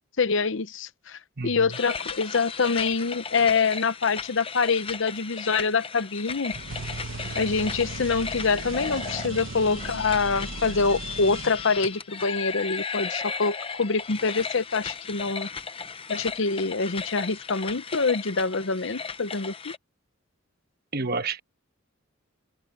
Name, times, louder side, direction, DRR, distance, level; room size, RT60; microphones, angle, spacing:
voice 1, 0.2-6.5 7.3-15.5 16.1-19.7, left 4 dB, 60° left, 0.8 m, -25 dB
voice 2, 1.4-1.8 20.9-21.4, right 4 dB, 45° right, 1.2 m, -30 dB
sound 1, 1.7-19.8, left 6 dB, 25° left, 0.7 m, -36 dB
sound 2, 6.5-12.0, right 3 dB, 65° right, 1.2 m, -37 dB
head